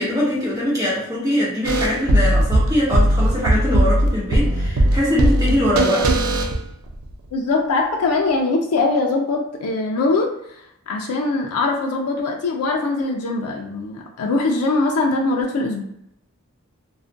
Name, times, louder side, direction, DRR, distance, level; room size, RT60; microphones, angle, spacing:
voice 1, 0.0-6.1, left 1 dB, 15° right, -7 dB, 0.8 m, -22 dB
sound 1, 1.6-7.1, right 1 dB, 75° right, 0.4 m, -18 dB
voice 2, 7.3-15.8, left 3 dB, 80° left, 1 dB, 0.4 m, -22 dB
2.4 x 2.1 x 2.5 m, 0.77 s
head